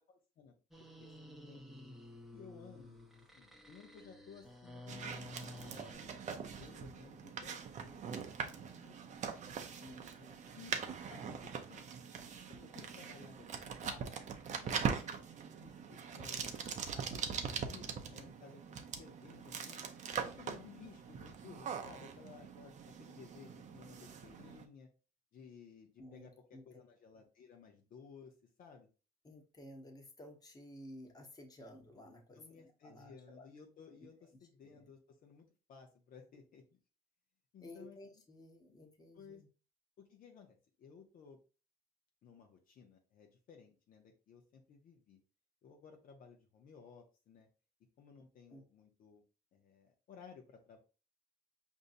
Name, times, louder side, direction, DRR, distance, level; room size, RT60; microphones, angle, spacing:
voice 1, 0.1-1.6 2.3-3.0 3.3-8.2 8.4-9.2 10.5-10.8 11.1-11.9 12.5-14.2 14.6-15.3 15.6-16.5 16.9-18.6 19.0-19.8 20.2-24.9 25.3-28.3 28.6-28.9 32.3-36.8 37.5-38.0 39.1-39.4 40.0-41.4 42.2-45.2 45.6-47.5 48.0-49.2 49.5-50.8, left 6 dB, 55° left, 2 dB, 0.7 m, -57 dB
sound 1, 0.7-5.9, left 1 dB, ahead, 0.7 m, -52 dB
sound 2, 4.9-24.7, right 6 dB, 45° right, 0.6 m, -42 dB
voice 2, 9.8-10.5 26.0-26.6 29.2-33.5 34.0-34.1 34.6-34.9 37.6-39.5 48.5-48.6, left 1 dB, 20° left, 2 dB, 1.0 m, -54 dB
5.2 x 2.7 x 2.5 m, 0.34 s
cardioid pair, 110°, 17 cm